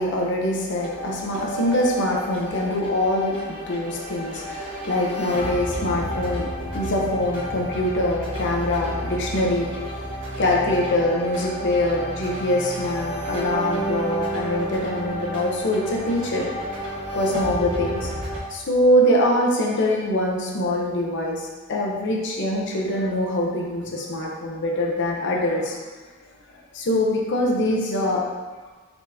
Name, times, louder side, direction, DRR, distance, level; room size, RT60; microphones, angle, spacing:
voice 1, 0.0-6.5 6.7-9.7 10.4-16.8 17.1-25.8 26.5-28.3, left 1 dB, 55° left, -1 dB, 0.7 m, -24 dB
sound 1, 0.8-18.4, equal, 85° right, 1.4 m, -31 dB
4.3 x 3.4 x 2.7 m, 1.3 s
head